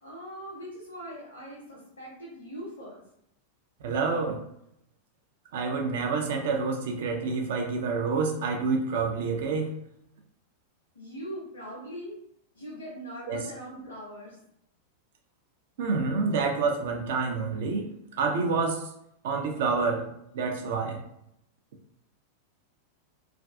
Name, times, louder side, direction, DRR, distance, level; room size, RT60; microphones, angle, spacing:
voice 1, 0.0-3.0 10.9-12.2 12.5-14.4, equal, 70° left, -6 dB, 0.7 m, -41 dB
voice 2, 3.8-4.4 5.5-9.7 13.3-13.4 15.8-17.9 18.2-18.9 19.2-20.1 20.3-21.0, right 4 dB, 55° right, 2 dB, 0.4 m, -28 dB
2.4 x 2.2 x 2.4 m, 0.75 s
figure-of-eight pair, 90°, 0 cm